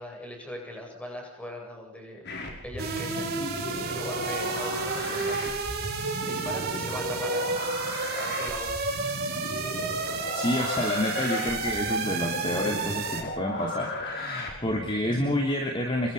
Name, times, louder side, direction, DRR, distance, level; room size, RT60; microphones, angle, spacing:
voice 1, 0.0-2.2 2.6-3.4 3.9-5.5 6.2-7.5 8.1-8.7, equal, 5° left, 0 dB, 8.0 m, -39 dB
sound 1, 2.2-15.4, left 1 dB, 50° left, 5.7 m, -36 dB
sound 2, 2.8-13.2, right 4 dB, 45° right, 5.3 m, -31 dB
voice 2, 10.3-16.1, left 1 dB, 25° left, 1 dB, 3.2 m, -29 dB
28.0 x 23.5 x 5.5 m, 0.62 s
head